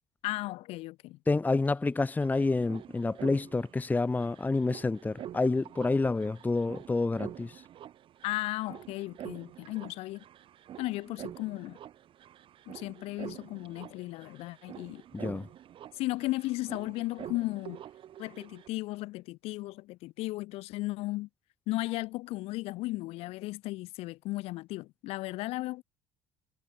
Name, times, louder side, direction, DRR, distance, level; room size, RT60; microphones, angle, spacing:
voice 1, 0.2-1.2 8.2-10.2 10.8-11.8 12.7-15.0 15.9-17.8 18.2-21.3 21.7-25.8, left 19 dB, 75° left, 5.5 m, -35 dB
voice 2, 1.3-7.6 15.1-15.4, left 3 dB, 15° left, 0.8 m, -28 dB
sound 1, 1.7-1.8 1.9-18.7, right 11 dB, 55° right, 3.5 m, -47 dB
supercardioid pair, 70°, 10 cm